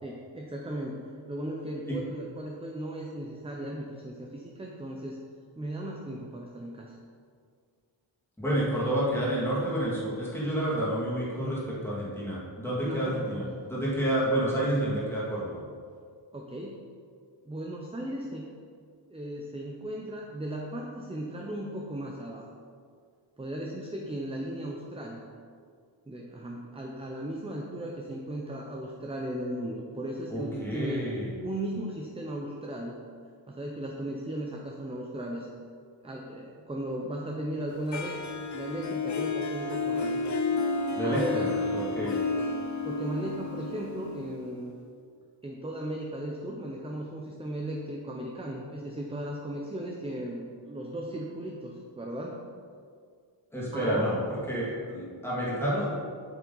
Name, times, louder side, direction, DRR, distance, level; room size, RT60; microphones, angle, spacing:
voice 1, 0.0-1.0 1.3-5.2 5.6-6.9 12.8-13.6 16.3-16.8 17.4-18.5 19.1-22.5 23.4-25.2 26.1-31.1 31.4-33.0 33.5-35.5 36.0-38.2 38.5-40.2 41.0-41.6 42.8-44.7 45.4-52.4 53.7-54.1, right 1 dB, 15° right, -1 dB, 0.6 m, -36 dB
voice 2, 8.4-15.6 30.3-31.3 41.0-41.2 41.5-42.1 53.5-54.2 54.5-55.9, right 1 dB, 5° left, -7 dB, 2.2 m, -29 dB
Harp, 37.9-44.8, left 4 dB, 40° left, 0.5 m, -31 dB
8.1 x 7.3 x 3.9 m, 2.1 s
wide cardioid pair, 165°, 47 cm